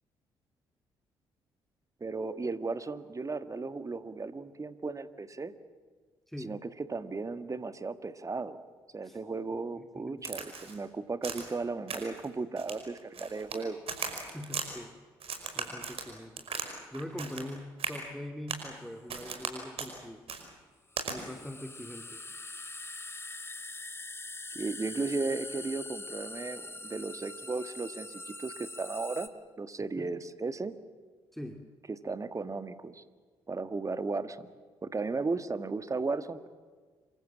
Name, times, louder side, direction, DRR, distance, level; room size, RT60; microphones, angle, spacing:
voice 1, 2.0-5.5 6.4-8.6 8.9-13.8 24.5-29.3 29.6-30.7 31.9-33.0 33.5-34.5 34.8-36.5, right 3 dB, 25° right, 11 dB, 1.6 m, -35 dB
voice 2, 6.3-6.6 9.0-9.2 9.7-10.2 14.3-14.9 15.5-16.5 16.9-20.3 21.1-22.3 30.0-30.1 31.3-31.6, left 1 dB, ahead, 4 dB, 2.1 m, -43 dB
Crack, 10.2-10.8 11.2-11.6 11.9-12.3 12.6-13.6 13.9-14.7 15.2-16.7 16.9-17.5 17.8-18.0 18.5-18.7 19.1-19.5 19.8-19.9 20.3-20.4 21.0-21.2, right 5 dB, 50° right, 5.3 m, -37 dB
sound 1, 18.8-18.9 20.9-29.3, left 2 dB, 20° left, 2.3 m, -43 dB
27.0 x 24.0 x 7.5 m, 1.5 s
figure-of-eight pair, 45°, 13 cm